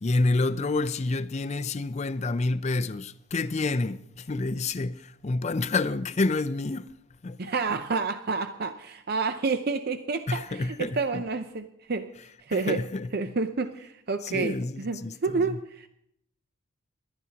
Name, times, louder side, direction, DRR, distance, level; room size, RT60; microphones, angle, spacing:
voice 1, 0.0-6.9 7.2-7.4 10.3-11.2 12.5-13.1 14.2-15.6, left 3 dB, 30° left, 0.5 m, -28 dB
voice 2, 7.4-12.1 12.4-12.8 13.1-15.9, right 4 dB, 45° right, 0.5 m, -29 dB
27.0 x 12.5 x 2.9 m
head